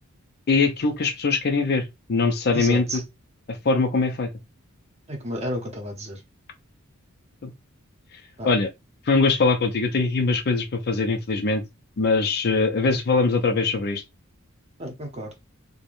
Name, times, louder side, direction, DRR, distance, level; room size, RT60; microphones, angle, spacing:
voice 1, 0.5-1.8 2.1-3.0 3.6-4.3 7.4-7.5 8.4-8.7 9.1-11.6 12.0-14.0, left 4 dB, 50° left, 0.5 m, -22 dB
voice 2, 2.5-3.0 5.1-6.2 8.4-8.5 14.8-15.3, equal, 30° right, 0.8 m, -31 dB
3.2 x 2.1 x 2.5 m
head